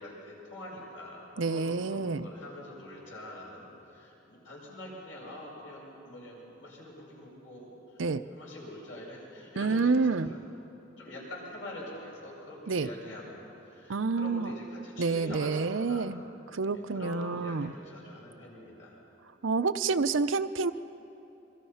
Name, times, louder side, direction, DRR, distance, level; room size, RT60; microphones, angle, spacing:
voice 1, 0.0-10.4 11.0-16.1 16.7-19.0, left 1 dB, 75° left, -3 dB, 7.4 m, -45 dB
voice 2, 1.4-2.3 8.0-8.2 9.6-10.3 12.7-12.9 13.9-14.5 15.0-16.2 16.5-17.7 19.4-20.7, right 4 dB, 80° right, 11 dB, 0.7 m, -28 dB
27.0 x 23.0 x 5.7 m, 3.0 s
head